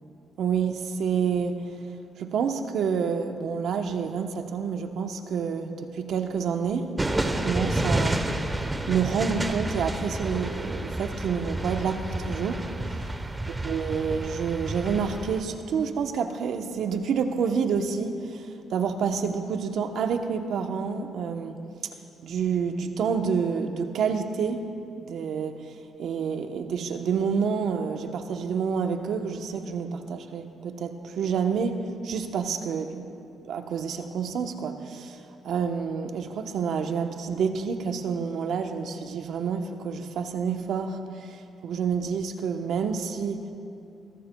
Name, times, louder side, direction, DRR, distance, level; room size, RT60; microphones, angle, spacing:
voice 1, 0.4-1.7 2.2-6.9 7.2-8.2 8.9-13.0 13.6-21.6 22.2-24.7 25.0-31.8 32.0-33.1 33.4-43.5, right 6 dB, 70° right, 6 dB, 0.9 m, -28 dB
sound 1, 7.0-15.4, right 1 dB, 15° right, 0.9 m, -30 dB
24.5 x 14.5 x 2.3 m, 2.6 s
cardioid pair, 90°, 0 cm